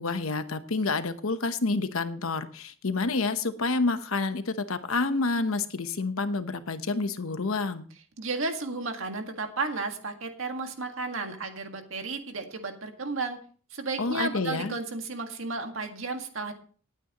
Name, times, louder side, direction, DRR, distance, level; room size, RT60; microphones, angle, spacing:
voice 1, 0.0-7.8 14.0-14.7, left 3 dB, 80° left, 10 dB, 1.0 m, -28 dB
voice 2, 8.2-13.4 13.7-16.5, right 3 dB, 70° right, 5 dB, 1.8 m, -33 dB
18.5 x 9.1 x 3.0 m, 0.43 s
head